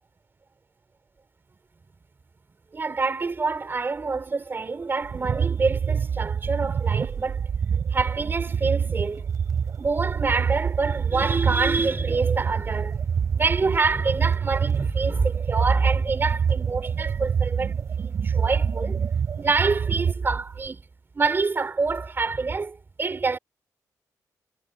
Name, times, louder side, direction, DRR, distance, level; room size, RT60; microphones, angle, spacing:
voice 1, 2.7-7.5 7.9-9.3 9.8-19.0 19.4-20.8 21.1-23.4, right 4 dB, 35° right, 3.4 m, -26 dB
sound 1, 5.0-20.7, right 7 dB, 55° right, 4.4 m, -26 dB
cardioid pair, 90°, 7 cm